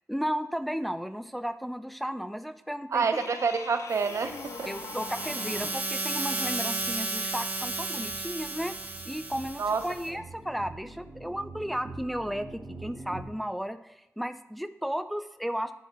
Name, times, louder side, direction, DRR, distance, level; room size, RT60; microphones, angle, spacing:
voice 1, 0.1-3.3 4.7-8.8 9.1-15.7, equal, ahead, 10 dB, 0.4 m, -34 dB
voice 2, 2.9-4.7 9.6-9.8 10.1-10.2, right 5 dB, 70° right, 9 dB, 0.6 m, -28 dB
sound 1, 3.1-5.9 8.3-8.4, left 6 dB, 80° left, 0.4 m, -42 dB
sound 2, 3.9-10.1, right 2 dB, 30° right, 1.3 m, -34 dB
sound 3, 4.1-13.2, right 3 dB, 50° right, 2.0 m, -47 dB
10.0 x 3.7 x 4.3 m, 0.94 s
cardioid pair, 70°, 5 cm